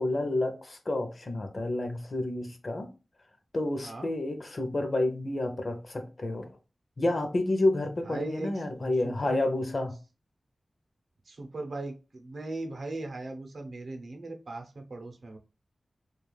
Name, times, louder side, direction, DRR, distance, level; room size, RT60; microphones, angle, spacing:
voice 1, 0.0-2.9 3.5-6.5 7.0-9.9, left 2 dB, 50° left, 0.5 m, -29 dB
voice 2, 8.0-9.4 11.3-15.4, right 2 dB, 70° right, 0.6 m, -38 dB
2.3 x 2.3 x 3.1 m
wide cardioid pair, 95°, 0 cm